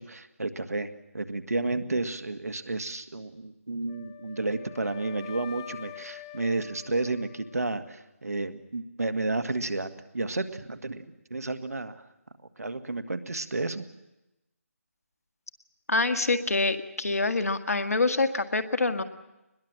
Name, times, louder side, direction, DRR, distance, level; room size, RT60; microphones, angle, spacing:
voice 1, 0.0-11.1 11.3-12.0 12.6-13.8, right 2 dB, 80° right, 8 dB, 1.8 m, -31 dB
Wind instrument woodwind instrument, 3.9-8.0, left 13 dB, 20° left, 0.7 m, -46 dB
voice 2, 15.9-19.0, left 3 dB, 75° left, 9 dB, 1.8 m, -26 dB
23.5 x 21.0 x 7.6 m, 0.96 s
figure-of-eight pair, 155°, 8 cm